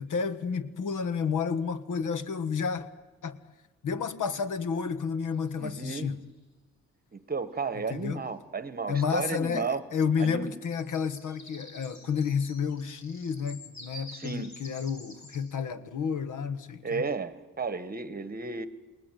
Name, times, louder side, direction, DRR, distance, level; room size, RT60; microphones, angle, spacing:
voice 1, 0.0-2.9 3.2-3.4 3.8-6.2 7.9-8.2 8.9-17.0, left 6 dB, 85° left, 1.5 m, -31 dB
sound 1, 0.9-1.0 5.3-5.9 7.6-7.7 7.9-8.2 10.5-15.4, left 1 dB, 60° left, 7.3 m, -49 dB
voice 2, 5.6-6.1 7.1-9.8 10.2-10.5 14.1-14.5 16.8-18.7, right 4 dB, 30° right, 1.3 m, -33 dB
29.0 x 20.0 x 9.2 m
wide cardioid pair, 160°, 30 cm